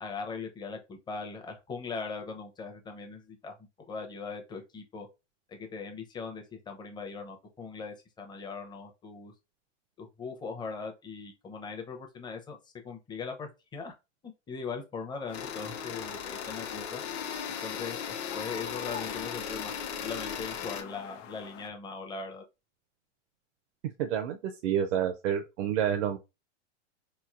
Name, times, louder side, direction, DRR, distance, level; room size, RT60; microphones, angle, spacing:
voice 1, 0.0-3.5 3.9-5.1 5.5-9.3 10.0-14.0 14.2-17.0 17.5-19.7 20.0-22.4, left 4 dB, 10° left, 0.5 m, -40 dB
sound 1, 15.3-21.7, left 9 dB, 80° left, 0.6 m, -45 dB
sound 2, 15.3-20.8, left 7 dB, 50° left, 0.9 m, -37 dB
voice 2, 24.0-26.2, right 9 dB, 75° right, 0.6 m, -29 dB
3.7 x 3.1 x 2.4 m
hypercardioid pair, 125°, 36 cm